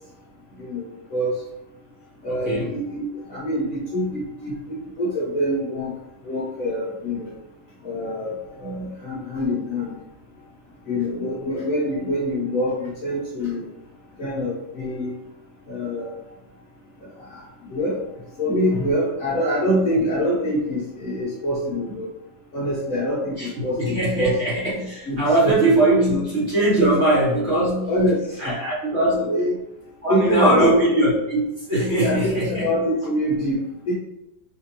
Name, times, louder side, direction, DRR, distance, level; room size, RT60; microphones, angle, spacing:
voice 1, 0.6-1.3 2.2-5.9 6.2-7.3 7.8-9.9 10.9-13.7 14.2-15.2 15.7-16.1 17.0-17.4 17.7-18.0 18.4-22.1 22.5-24.4 25.0-25.6 27.9-28.6 29.3-29.5 30.1-30.8 32.0-33.9, equal, 55° left, -6 dB, 1.0 m, -25 dB
voice 2, 23.8-27.9 28.4-29.3 30.0-32.7, right 1 dB, 45° right, -8 dB, 1.1 m, -20 dB
4.9 x 2.5 x 2.9 m, 0.88 s
omnidirectional pair, 2.1 m